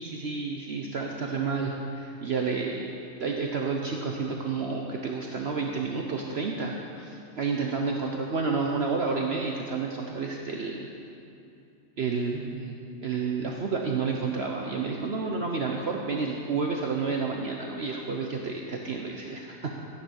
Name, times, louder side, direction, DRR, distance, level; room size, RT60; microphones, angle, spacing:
voice 1, 0.0-10.9 12.0-12.8 13.0-19.7, right 4 dB, 55° right, 1 dB, 1.1 m, -30 dB
13.0 x 9.9 x 6.4 m, 2.6 s
omnidirectional pair, 1.4 m